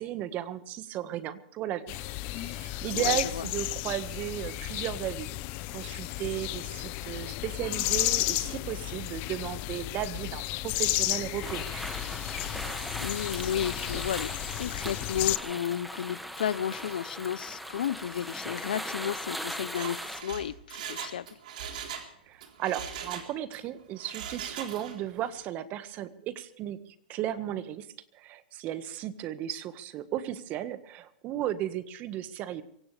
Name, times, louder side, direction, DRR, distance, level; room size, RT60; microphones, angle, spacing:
voice 1, 0.0-5.4 5.7-11.8 22.3-27.9 28.1-32.6, right 12 dB, 35° right, 12 dB, 1.6 m, -35 dB
sound 1, 1.9-15.4, left 19 dB, 40° left, 0.9 m, -33 dB
voice 2, 2.9-3.5 13.0-21.2, left 9 dB, 75° left, 20 dB, 0.8 m, -33 dB
sound 2, 11.4-20.2, equal, ahead, 1.9 m, -39 dB
Mechanisms, 19.8-22.1 22.4-23.6 24.0-25.1 25.4-25.5, right 8 dB, 65° right, 3.9 m, -40 dB
24.0 x 16.5 x 3.4 m, 0.72 s
hypercardioid pair, 125°, 5 cm